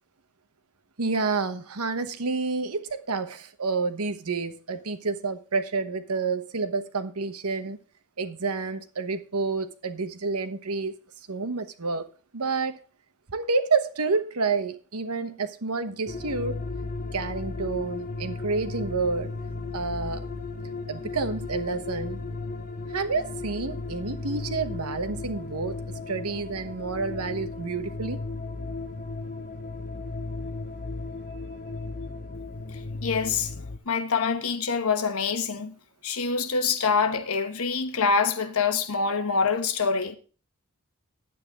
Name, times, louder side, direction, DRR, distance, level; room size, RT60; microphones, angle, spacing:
voice 1, 1.0-7.8 8.2-11.0 11.3-12.1 12.3-12.8 13.3-16.6 17.1-19.3 19.7-20.3 20.9-22.2 22.9-25.8 26.1-28.2, right 4 dB, 85° right, 1.1 m, -29 dB
sound 1, 16.1-33.8, left 3 dB, 35° left, 0.7 m, -35 dB
voice 2, 33.0-33.5 33.9-35.7 36.0-40.2, left 5 dB, 70° left, 1.1 m, -25 dB
10.5 x 8.9 x 3.6 m
head